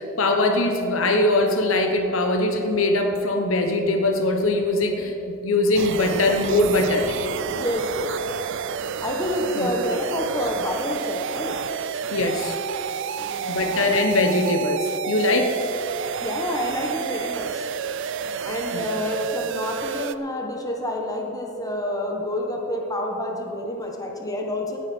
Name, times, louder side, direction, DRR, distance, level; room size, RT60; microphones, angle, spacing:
voice 1, 0.0-7.6 9.5-9.7 12.1-12.5 13.5-15.5 18.7-18.8, left 2 dB, 75° left, 4 dB, 1.2 m, -22 dB
sound 1, 5.7-20.1, right 7 dB, 65° right, 0.4 m, -30 dB
voice 2, 7.5-8.1 9.0-11.6 13.2-13.8 15.2-15.5 16.2-17.7 18.4-24.8, left 1 dB, 20° left, 1 dB, 1.4 m, -28 dB
17.0 x 9.6 x 4.6 m, 3.0 s
head